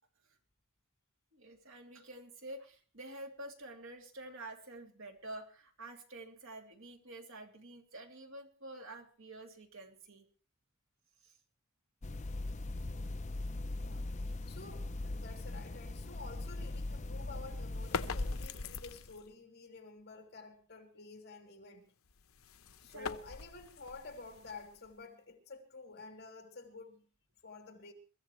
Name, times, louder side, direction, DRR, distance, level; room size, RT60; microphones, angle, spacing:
voice 1, 1.3-10.3 11.2-11.4 22.9-23.2, right 1 dB, 65° right, 2.8 m, -49 dB
sound 1, 12.0-18.5, left 2 dB, 35° left, 0.6 m, -40 dB
voice 2, 13.8-21.9 22.8-27.1 27.4-27.9, left 3 dB, 50° left, 3.0 m, -51 dB
sound 2, 17.7-19.3 22.0-25.0, left 5 dB, 80° left, 0.8 m, -43 dB
23.5 x 14.5 x 3.2 m
head